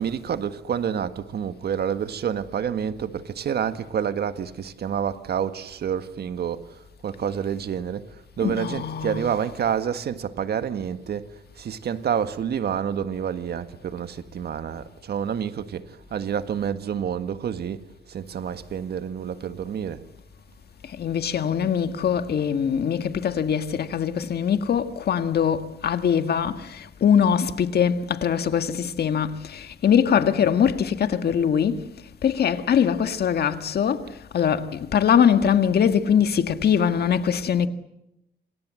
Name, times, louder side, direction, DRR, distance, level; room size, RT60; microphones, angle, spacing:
voice 1, 0.0-8.1 8.4-20.0, right 8 dB, 70° right, 1.7 m, -28 dB
voice 2, 8.4-9.5 20.9-31.9 32.2-37.7, left 8 dB, 70° left, 1.8 m, -22 dB
28.0 x 26.5 x 7.7 m
wide cardioid pair, 135°, 17 cm